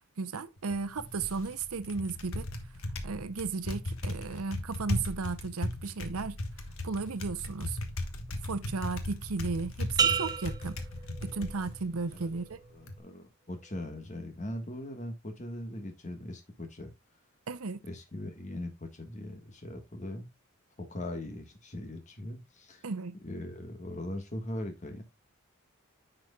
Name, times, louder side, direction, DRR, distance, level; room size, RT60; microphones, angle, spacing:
voice 1, 0.2-2.5 3.0-6.4 6.8-7.8 8.4-10.8 11.2-12.6 17.5-17.8 22.8-23.1, right 4 dB, 80° right, 0.7 m, -35 dB
Typing, 0.6-13.0, left 1 dB, 70° left, 1.3 m, -38 dB
sound 1, 10.0-11.8 12.3-12.7, right 6 dB, 20° right, 0.5 m, -31 dB
voice 2, 12.7-16.9 17.8-20.3 20.8-22.9 23.2-25.0, left 1 dB, 35° left, 1.5 m, -40 dB
9.7 x 6.2 x 2.3 m
head